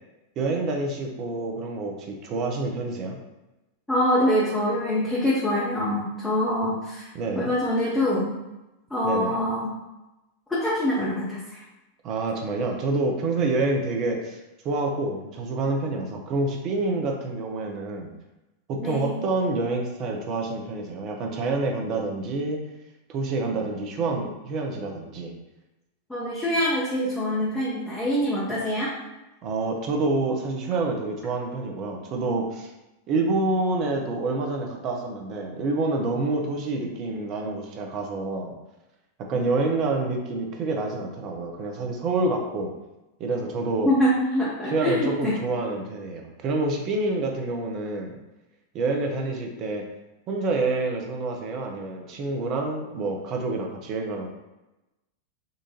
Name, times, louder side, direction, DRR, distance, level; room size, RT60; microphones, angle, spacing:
voice 1, 0.4-3.2 7.1-7.5 9.0-9.3 12.0-14.4 14.6-18.1 18.7-22.6 23.1-25.3 29.4-32.7 33.1-38.5 39.3-42.7 43.2-43.9 44.7-48.2 48.7-49.8 50.3-54.3, right 3 dB, 35° right, 2 dB, 0.6 m, -27 dB
voice 2, 3.9-7.1 7.3-8.3 8.9-9.7 10.5-11.6 18.8-19.2 26.1-28.9 43.8-45.4, equal, 10° left, -8 dB, 0.8 m, -24 dB
3.8 x 2.5 x 2.8 m, 1.0 s
figure-of-eight pair, 90°, 0 cm